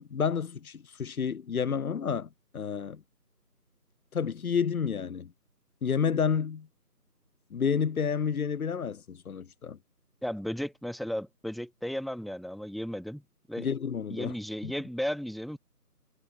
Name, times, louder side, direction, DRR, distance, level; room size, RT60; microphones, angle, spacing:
voice 1, 0.0-3.0 4.1-5.3 5.8-6.7 7.5-9.8 13.6-14.3 14.6-14.7, left 6 dB, 65° left, 0.6 m, -30 dB
voice 2, 10.2-13.2 13.5-13.7 14.1-15.6, equal, ahead, 0.5 m, -34 dB
figure-of-eight pair, 165°, 48 cm